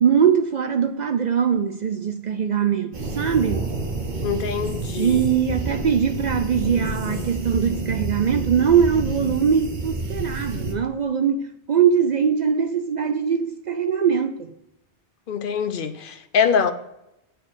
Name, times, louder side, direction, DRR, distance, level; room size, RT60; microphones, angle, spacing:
voice 1, 0.0-3.7 5.0-14.5, right 7 dB, 60° right, 0.5 m, -21 dB
sound 1, 2.9-10.7, right 2 dB, 45° right, 1.3 m, -29 dB
voice 2, 4.2-5.2 15.3-16.7, left 7 dB, 55° left, 0.8 m, -23 dB
8.3 x 4.6 x 6.2 m
omnidirectional pair, 1.2 m